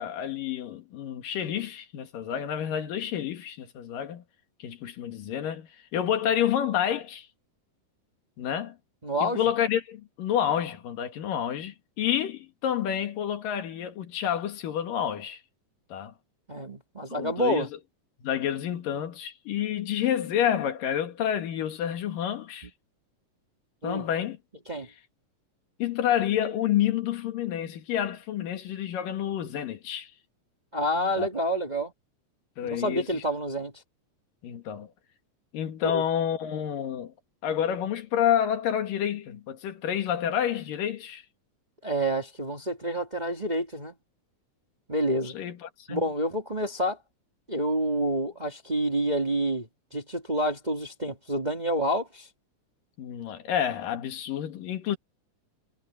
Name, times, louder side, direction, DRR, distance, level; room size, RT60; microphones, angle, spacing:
voice 1, 0.0-4.2 4.6-7.3 8.4-8.8 9.2-15.4 15.9-16.1 17.1-17.7 18.2-22.7 23.8-24.4 25.8-30.1 31.2-31.3 32.6-33.2 34.4-34.9 35.5-37.1 37.4-41.2 45.3-46.0 53.0-55.0, left 10 dB, 90° left, 3.6 m, -29 dB
voice 2, 9.0-9.4 16.5-17.7 23.8-24.0 24.7-24.9 30.7-31.9 32.6-33.7 35.8-36.0 41.8-43.9 44.9-45.3 45.9-47.0 47.5-52.3, equal, 15° right, 1.6 m, -28 dB
omnidirectional pair, 3.8 m